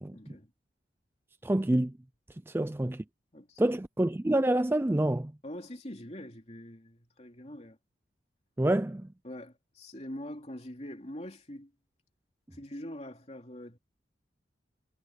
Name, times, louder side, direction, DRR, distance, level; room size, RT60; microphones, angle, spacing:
voice 1, 0.1-0.5 2.6-2.7 3.3-3.8 5.4-7.8 9.2-11.7 12.5-13.8, left 1 dB, 35° left, 3.2 m, -44 dB
voice 2, 1.4-1.9 2.3-3.0 3.6-5.3 8.6-9.1, right 1 dB, 10° right, 0.4 m, -27 dB
head